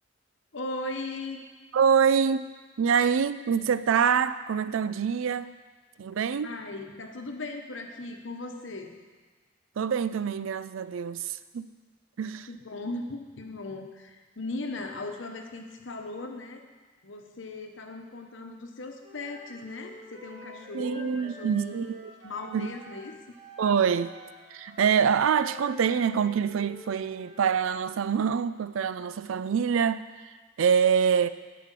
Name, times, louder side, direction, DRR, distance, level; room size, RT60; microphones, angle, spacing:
voice 1, 0.5-1.4 6.4-9.0 12.2-16.6 17.0-21.9 22.2-23.2, left 2 dB, 70° left, 4 dB, 1.0 m, -38 dB
voice 2, 1.7-2.5 2.8-5.5 6.0-6.6 9.8-11.7 12.2-12.5 20.7-22.1 22.5-22.8 23.6-24.2 24.5-31.3, right 7 dB, 80° right, 14 dB, 0.4 m, -25 dB
Wind instrument woodwind instrument, 19.0-23.0 23.3-27.5, right 1 dB, 55° right, 2.6 m, -48 dB
10.5 x 5.1 x 7.5 m, 1.4 s
head